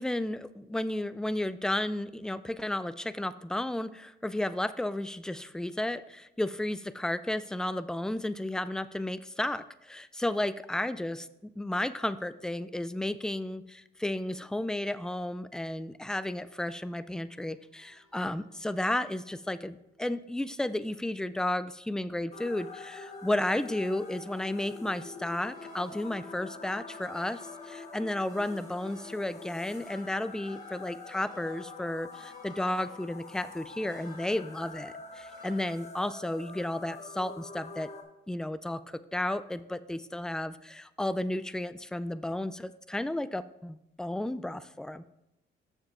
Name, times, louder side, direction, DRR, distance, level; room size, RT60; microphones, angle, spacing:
voice 1, 0.0-37.9 38.3-45.1, left 1 dB, 5° left, 14 dB, 0.3 m, -33 dB
sound 1, 16.9-35.6, equal, 20° right, 2.5 m, -59 dB
sound 2, 22.3-38.0, left 4 dB, 35° left, 1.1 m, -45 dB
7.1 x 6.7 x 3.8 m, 0.88 s
cardioid pair, 90°, 20 cm